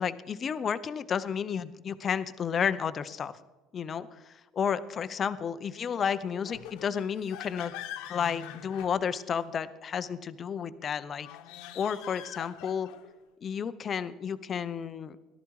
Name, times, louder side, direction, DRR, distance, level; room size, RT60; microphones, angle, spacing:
voice 1, 0.0-3.3 3.7-7.7 8.1-11.3 11.7-12.9 13.4-15.2, left 7 dB, 30° left, 13 dB, 0.6 m, -32 dB
sound 1, 6.4-9.5 11.1-13.1, left 11 dB, 80° left, 1.2 m, -44 dB
18.0 x 12.5 x 4.7 m, 1.2 s
cardioid pair, 160°, 0 cm